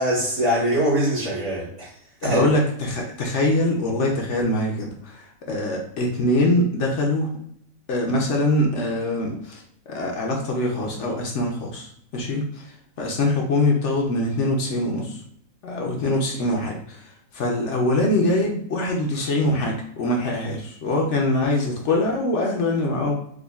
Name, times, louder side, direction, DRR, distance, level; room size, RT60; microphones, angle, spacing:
voice 1, 0.0-1.9 2.2-2.5, right 1 dB, 50° right, -4 dB, 1.5 m, -22 dB
voice 2, 2.2-7.3 7.9-15.2 15.6-17.0 17.3-23.1, left 1 dB, 60° left, 0 dB, 0.9 m, -23 dB
4.9 x 2.3 x 2.3 m, 0.69 s
omnidirectional pair, 1.6 m